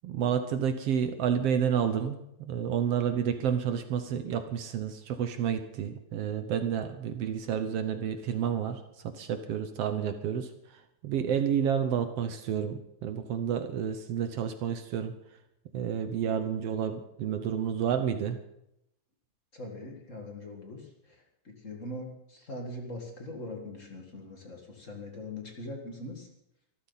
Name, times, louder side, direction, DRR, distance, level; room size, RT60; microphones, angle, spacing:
voice 1, 0.0-15.1 15.7-18.4, right 8 dB, 65° right, 8 dB, 1.7 m, -30 dB
voice 2, 19.5-26.3, left 1 dB, 30° left, 1 dB, 1.9 m, -42 dB
24.0 x 14.0 x 4.1 m, 0.82 s
omnidirectional pair, 3.4 m